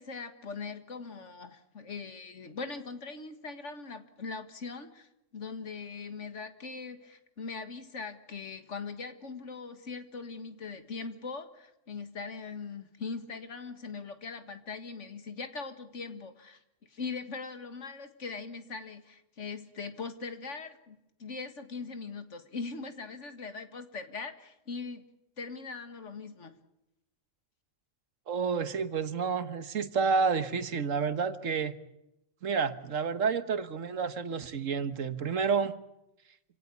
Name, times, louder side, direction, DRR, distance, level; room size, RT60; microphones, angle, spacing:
voice 1, 0.0-25.0 25.4-26.6, left 4 dB, 70° left, 9 dB, 2.1 m, -41 dB
voice 2, 28.3-31.7 32.4-35.7, right 5 dB, 85° right, 12 dB, 1.6 m, -30 dB
26.5 x 17.5 x 8.3 m, 0.87 s
omnidirectional pair, 1.3 m